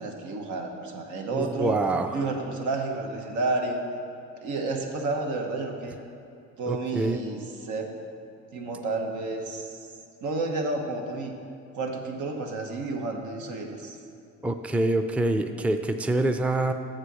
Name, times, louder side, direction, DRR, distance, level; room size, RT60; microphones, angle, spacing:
voice 1, 0.0-1.8 2.1-3.8 4.4-6.0 6.6-7.9 8.5-9.8 10.2-11.3 11.7-14.0, right 3 dB, 80° right, 2 dB, 1.1 m, -31 dB
voice 2, 1.3-2.2 6.7-7.2 14.4-16.7, right 2 dB, 5° right, 7 dB, 0.4 m, -26 dB
7.0 x 6.6 x 6.1 m, 2.6 s
cardioid pair, 90°, 30 cm